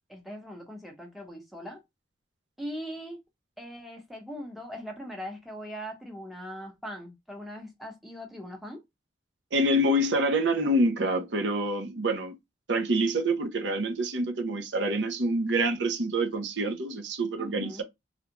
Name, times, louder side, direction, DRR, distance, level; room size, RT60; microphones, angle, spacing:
voice 1, 0.1-1.8 2.6-3.2 3.6-8.8 17.4-17.8, equal, ahead, 0.8 m, -40 dB
voice 2, 9.5-12.4 12.7-17.8, right 1 dB, 80° right, 0.7 m, -26 dB
3.5 x 2.4 x 2.9 m
head